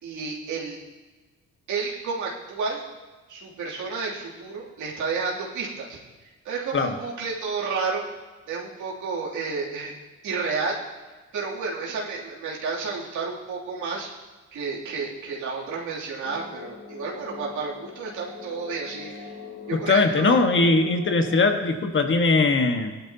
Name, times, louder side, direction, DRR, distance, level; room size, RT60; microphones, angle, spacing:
voice 1, 0.0-0.8 1.7-2.8 3.3-8.0 8.5-9.9 10.2-10.8 11.3-14.1 14.5-19.4 19.7-20.4, right 4 dB, 75° right, -5 dB, 2.9 m, -31 dB
sound 1, 16.2-21.4, left 5 dB, 75° left, 2.6 m, -42 dB
voice 2, 19.9-22.9, left 3 dB, 40° left, 6 dB, 1.5 m, -20 dB
17.0 x 11.5 x 2.8 m, 1.3 s
cardioid pair, 90°, 30 cm